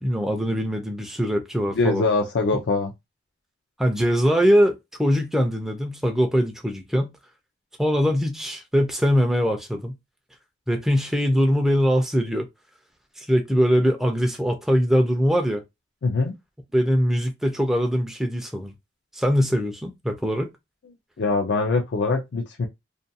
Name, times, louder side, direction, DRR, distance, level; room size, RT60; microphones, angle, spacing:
voice 1, 0.0-2.1 3.8-4.7 5.0-7.1 7.8-9.9 10.7-12.5 13.2-15.6 16.7-18.7 19.1-20.5, equal, ahead, 0.4 m, -22 dB
voice 2, 1.7-2.9 16.0-16.3 21.2-22.7, left 3 dB, 70° left, 0.4 m, -23 dB
2.4 x 2.2 x 2.6 m
head